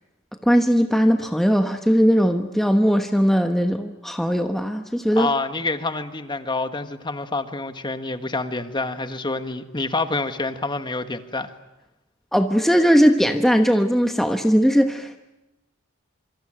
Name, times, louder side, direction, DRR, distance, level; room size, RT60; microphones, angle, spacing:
voice 1, 0.4-5.3 12.3-15.2, equal, ahead, 5 dB, 1.1 m, -19 dB
voice 2, 5.2-11.5, left 3 dB, 25° left, 9 dB, 1.5 m, -27 dB
26.5 x 25.0 x 9.0 m, 0.96 s
head